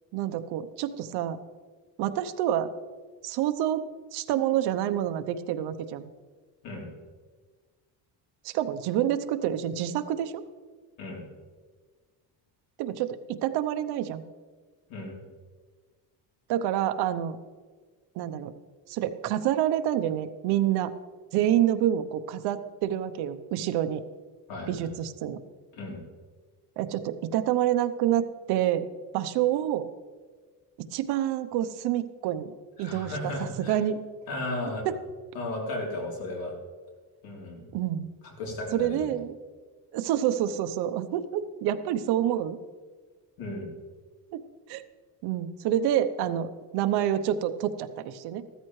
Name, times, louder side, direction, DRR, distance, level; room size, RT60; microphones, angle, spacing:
voice 1, 0.1-1.4 2.0-2.7 3.2-3.8 4.1-6.1 8.4-10.4 12.8-14.2 16.5-17.4 18.2-18.5 18.9-20.9 21.3-24.0 24.7-25.4 26.8-28.9 29.1-29.9 30.9-32.5 32.8-33.3 33.7-34.0 34.8-35.0 37.7-38.1 38.7-39.4 39.9-42.6 44.3-44.4 44.7-44.8 45.2-48.5, right 11 dB, 75° right, 9 dB, 0.8 m, -27 dB
voice 2, 24.5-24.9 25.7-26.0 32.8-33.8 34.3-34.9 35.3-36.5 37.2-37.7 38.2-39.1 43.4-43.7, left 2 dB, 60° left, -1 dB, 3.4 m, -35 dB
14.5 x 13.5 x 3.2 m, 1.5 s
cardioid pair, 165°, 40 cm